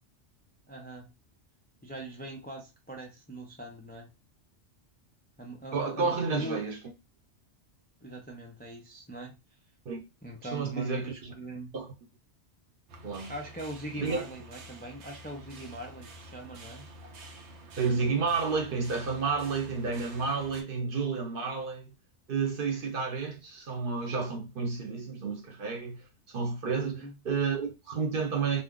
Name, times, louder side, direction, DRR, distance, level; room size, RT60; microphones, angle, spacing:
voice 1, 0.7-1.1 1.8-4.1 5.4-6.6 8.0-9.4 10.2-11.7 13.3-16.9 26.8-27.2, right 1 dB, 15° left, 0.3 m, -41 dB
voice 2, 5.7-6.8 9.8-10.0 10.4-11.3 11.7-11.9 13.0-13.3 14.0-14.2 17.8-21.9 22.3-28.6, right 5 dB, 55° right, 0.9 m, -31 dB
sound 1, 12.9-20.6, right 1 dB, 80° right, 1.0 m, -49 dB
2.5 x 2.3 x 3.6 m
omnidirectional pair, 1.2 m